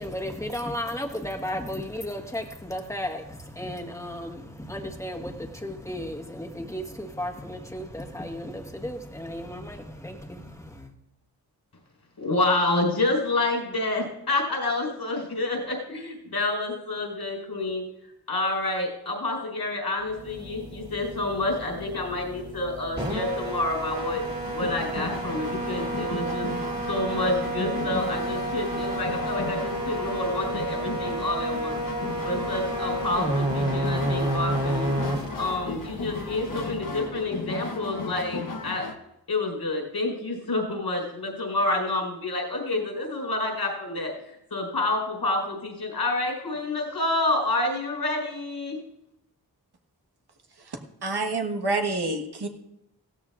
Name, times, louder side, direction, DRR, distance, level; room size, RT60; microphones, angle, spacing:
voice 1, 0.0-10.9, left 1 dB, 10° left, 2 dB, 1.4 m, -34 dB
voice 2, 12.2-17.8 18.3-24.2 24.5-26.5 26.9-31.7 32.2-35.0 35.4-38.8 39.3-44.1 44.5-48.8, left 2 dB, 85° left, 0 dB, 4.5 m, -28 dB
sound 1, 20.1-37.3, right 1 dB, 25° right, 2.3 m, -31 dB
sound 2, 23.9-39.0, left 3 dB, 55° left, 1.2 m, -36 dB
voice 3, 51.0-52.5, right 3 dB, 75° right, 3 dB, 1.4 m, -27 dB
17.0 x 13.0 x 2.5 m, 0.86 s
wide cardioid pair, 75°, 39 cm